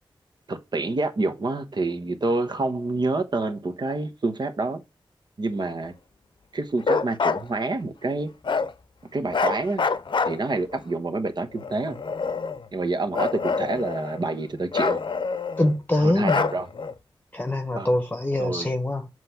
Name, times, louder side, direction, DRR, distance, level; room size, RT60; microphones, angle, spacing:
voice 1, 0.5-4.8 5.4-5.9 6.5-8.3 9.1-9.9 10.2-12.0 12.7-15.0 16.0-16.7 17.7-17.9 18.4-18.7, right 3 dB, 55° right, 1.1 m, -27 dB
Bark, 6.8-7.4 8.4-8.7 9.3-10.8 11.6-12.7 13.1-14.3 14.7-15.7 16.2-16.9, left 5 dB, 65° left, 0.7 m, -26 dB
voice 2, 15.6-16.5 17.3-19.1, left 1 dB, 20° left, 1.0 m, -24 dB
7.6 x 3.2 x 5.8 m
wide cardioid pair, 75°, 9 cm